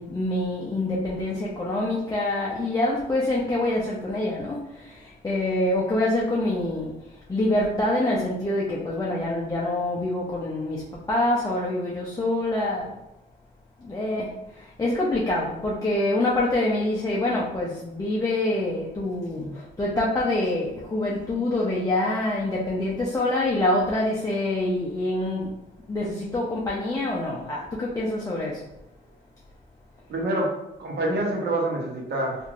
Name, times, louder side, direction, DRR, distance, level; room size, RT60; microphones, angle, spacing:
voice 1, 0.0-6.9 7.3-13.0 13.8-25.6 25.9-28.6, left 1 dB, 15° left, -5 dB, 0.5 m, -26 dB
voice 2, 30.1-30.5 30.8-32.4, right 1 dB, 55° right, -1 dB, 0.9 m, -26 dB
2.9 x 2.6 x 2.4 m, 0.89 s
cardioid pair, 90°, 20 cm